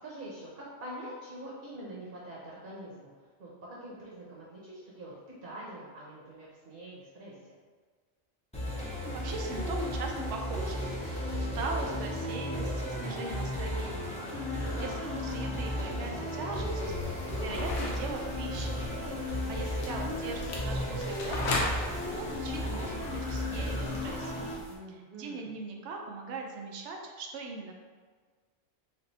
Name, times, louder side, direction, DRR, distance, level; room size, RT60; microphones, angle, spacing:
voice 1, 0.0-3.1 3.4-5.1 5.4-7.5 14.6-14.9 24.7-25.5, right 1 dB, 55° right, -6 dB, 1.0 m, -44 dB
sound 1, 8.5-24.5, left 1 dB, 5° left, 0.6 m, -34 dB
voice 2, 8.8-14.2 14.5-14.9 15.2-18.9 19.3-21.8 22.1-24.4 24.9-27.7, right 3 dB, 80° right, 2 dB, 0.9 m, -41 dB
sound 2, 16.8-24.8, left 2 dB, 90° left, 1.0 m, -39 dB
3.2 x 2.5 x 4.0 m, 1.5 s
omnidirectional pair, 1.2 m